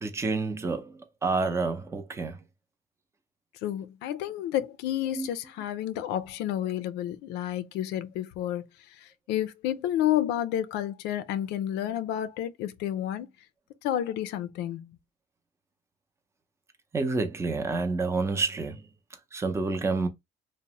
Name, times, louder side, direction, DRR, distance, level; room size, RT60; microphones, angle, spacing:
voice 1, 0.0-2.4 5.1-5.3 16.9-18.9 19.3-20.1, right 3 dB, 15° right, 0.5 m, -29 dB
voice 2, 3.6-8.7 8.9-13.3 13.8-15.0, left 12 dB, 90° left, 0.4 m, -30 dB
2.6 x 2.0 x 2.9 m
cardioid pair, 110°, 17 cm